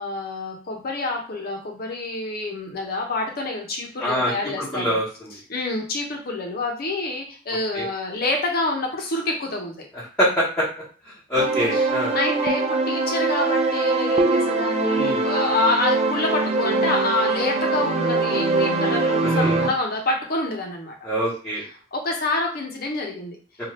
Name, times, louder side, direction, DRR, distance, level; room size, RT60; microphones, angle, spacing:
voice 1, 0.0-5.0 5.5-9.9 11.7-11.9 12.1-21.0 21.6-23.4, left 2 dB, 50° left, 1 dB, 0.7 m, -27 dB
voice 2, 4.0-4.3 4.7-5.3 7.7-7.8 10.2-10.6 11.3-12.2 14.9-15.2 19.2-19.6 21.0-21.6, equal, 10° left, -11 dB, 1.2 m, -24 dB
sound 1, 11.4-19.7, right 3 dB, 35° right, 0.4 m, -22 dB
2.7 x 2.4 x 3.2 m, 0.40 s
head